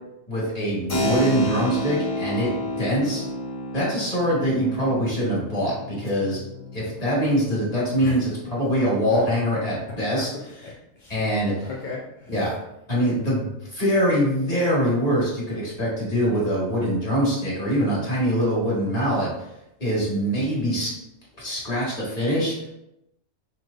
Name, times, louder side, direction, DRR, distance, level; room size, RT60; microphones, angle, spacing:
voice 1, 0.3-3.2 3.7-6.4 6.7-10.3 11.1-11.7 12.3-12.5 12.9-19.5 19.8-20.9 21.4-22.5, equal, 30° left, -6 dB, 1.8 m, -23 dB
Keyboard (musical), 0.9-9.3, left 1 dB, 75° left, 1.6 m, -31 dB
voice 2, 10.1-10.7 11.0-11.3 11.6-12.4, left 4 dB, 50° left, -3 dB, 0.6 m, -37 dB
5.8 x 3.1 x 2.5 m, 0.86 s
omnidirectional pair, 1.3 m